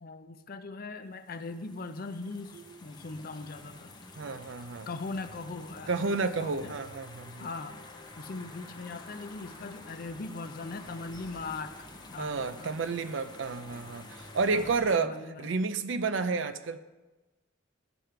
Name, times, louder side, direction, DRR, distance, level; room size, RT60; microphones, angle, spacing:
voice 1, 0.0-3.9 4.9-6.7 7.4-7.8 8.2-11.8 12.1-12.7 14.5-15.5, left 3 dB, 45° left, 9 dB, 0.5 m, -40 dB
sound 1, 1.2-14.8, left 2 dB, 20° left, 0.8 m, -49 dB
voice 2, 4.2-4.9 5.9-7.5 12.2-16.8, right 4 dB, 65° right, 11 dB, 0.5 m, -31 dB
sound 2, 5.2-10.9, left 1 dB, 5° left, 2.3 m, -57 dB
12.0 x 4.5 x 5.0 m, 1.1 s
head